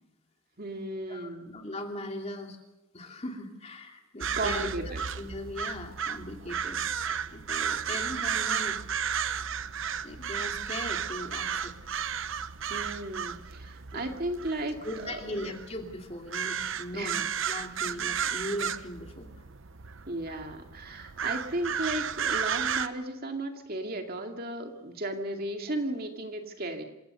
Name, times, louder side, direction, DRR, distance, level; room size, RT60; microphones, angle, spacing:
voice 1, 0.6-1.5 4.4-5.0 12.7-15.5 16.9-17.2 20.1-26.8, right 1 dB, 45° right, 4 dB, 2.3 m, -35 dB
voice 2, 1.1-2.6 2.9-6.8 7.1-8.8 10.0-11.7 13.9-14.0 14.8-19.3, left 1 dB, 30° left, 3 dB, 2.6 m, -39 dB
sound 1, 4.2-22.9, right 7 dB, 60° right, 0.8 m, -33 dB
27.0 x 17.0 x 6.8 m, 0.98 s
head